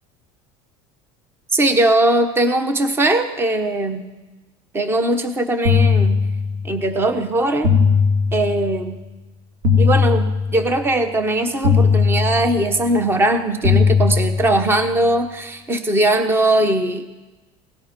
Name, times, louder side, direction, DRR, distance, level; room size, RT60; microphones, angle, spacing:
voice 1, 1.5-4.1 4.7-6.2 6.6-7.7 8.3-9.0 9.8-17.0, right 1 dB, 15° right, 8 dB, 1.0 m, -19 dB
sound 1, 5.6-6.8 7.6-8.8 9.6-10.8 11.6-12.8 13.6-14.8, left 5 dB, 75° right, 2.5 m, -18 dB
18.0 x 12.0 x 5.3 m, 1.1 s
cardioid pair, 145°, 15 cm